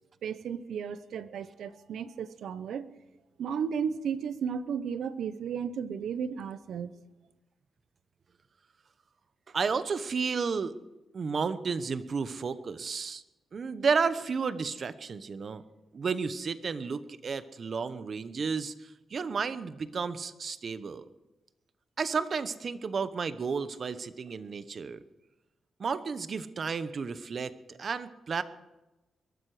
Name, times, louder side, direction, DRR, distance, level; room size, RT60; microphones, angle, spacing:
voice 1, 0.2-2.9 3.4-6.9, right 7 dB, 85° right, 14 dB, 0.9 m, -34 dB
voice 2, 9.5-10.7 11.1-13.2 13.5-15.6 15.9-21.0 22.0-25.0 25.8-28.4, right 5 dB, 50° right, 13 dB, 1.0 m, -32 dB
22.0 x 12.5 x 5.0 m, 1.0 s
cardioid pair, 115°, 0 cm